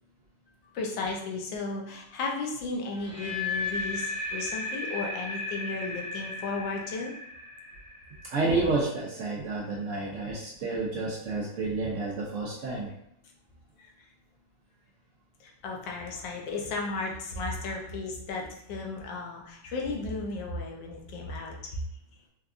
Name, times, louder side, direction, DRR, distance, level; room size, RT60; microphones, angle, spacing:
voice 1, 0.7-7.1 13.8-14.1 15.4-21.8, left 3 dB, 90° left, 0 dB, 1.4 m, -34 dB
sound 1, 3.0-9.0, left 3 dB, 70° left, 1.1 m, -35 dB
voice 2, 8.2-12.9, right 3 dB, 70° right, -4 dB, 0.7 m, -30 dB
4.4 x 2.4 x 2.4 m, 0.75 s
omnidirectional pair, 1.9 m